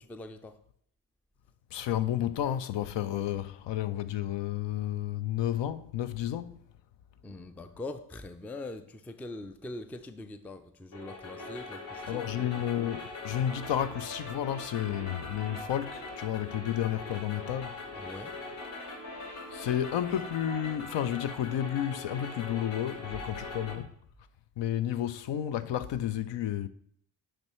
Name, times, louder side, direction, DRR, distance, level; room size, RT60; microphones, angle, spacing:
voice 1, 0.1-0.6 7.2-12.2 18.0-18.3, left 2 dB, 5° left, 0.3 m, -42 dB
voice 2, 1.7-6.6 12.1-17.8 19.5-23.9 24.6-26.7, left 11 dB, 60° left, 0.5 m, -31 dB
minor staccato, 10.9-23.8, left 2 dB, 80° left, 1.3 m, -41 dB
9.8 x 3.3 x 3.0 m
supercardioid pair, 45°, 50 cm